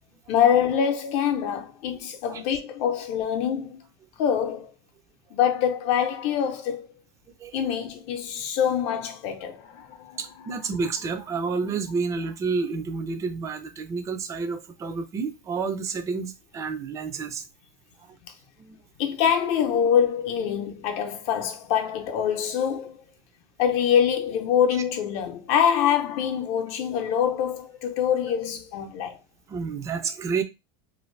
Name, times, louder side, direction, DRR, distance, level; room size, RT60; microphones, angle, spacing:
voice 1, 0.3-3.8 4.2-4.7 5.3-6.9 7.5-10.5 18.2-18.3 19.0-23.0 23.6-29.2, left 8 dB, 55° left, 0.7 m, -25 dB
voice 2, 10.2-17.4 18.1-18.2 18.6-18.8 29.5-30.4, right 5 dB, 25° right, 0.4 m, -30 dB
2.6 x 2.5 x 3.2 m
supercardioid pair, 140°, 13 cm